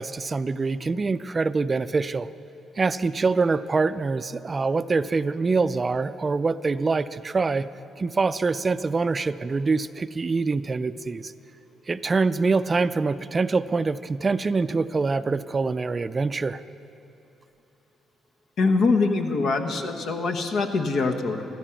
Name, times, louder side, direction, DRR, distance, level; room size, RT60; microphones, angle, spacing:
voice 1, 0.0-2.3 2.8-7.7 8.0-11.3 11.9-16.6, right 4 dB, 35° right, 14 dB, 0.4 m, -25 dB
voice 2, 18.6-21.5, left 3 dB, 65° left, 4 dB, 1.2 m, -23 dB
14.5 x 13.5 x 5.9 m, 2.7 s
supercardioid pair, 70°, 0 cm